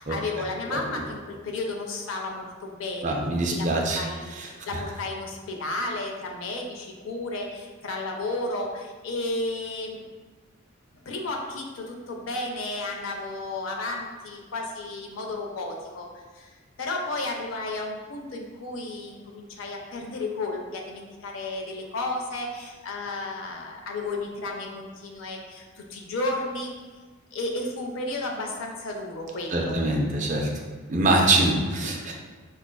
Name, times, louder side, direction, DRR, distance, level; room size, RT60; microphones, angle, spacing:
voice 1, 0.0-3.2 3.4-3.7 3.9-10.1 11.0-16.1 16.3-16.5 16.8-26.7 27.3-29.8, left 2 dB, 70° left, 1 dB, 0.5 m, -33 dB
voice 2, 3.0-4.0 4.4-4.5 29.5-30.5 30.9-32.1, right 2 dB, 35° right, 0 dB, 0.4 m, -23 dB
4.7 x 2.4 x 2.2 m, 1.4 s
head